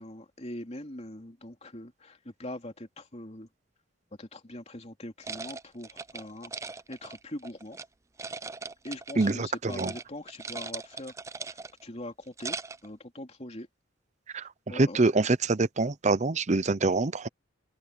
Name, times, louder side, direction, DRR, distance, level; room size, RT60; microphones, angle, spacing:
voice 1, 0.0-3.5 4.2-6.5 6.9-7.8 8.8-11.1 11.5-13.7 14.3-15.0, left 1 dB, 30° left, 3.2 m, -42 dB
sound 1, 5.2-7.9 8.2-9.4 9.7-10.0 10.3-11.8 12.2-12.9, right 4 dB, 15° right, 0.4 m, -39 dB
voice 2, 9.2-9.9 14.3-17.3, right 3 dB, 35° right, 0.7 m, -25 dB
head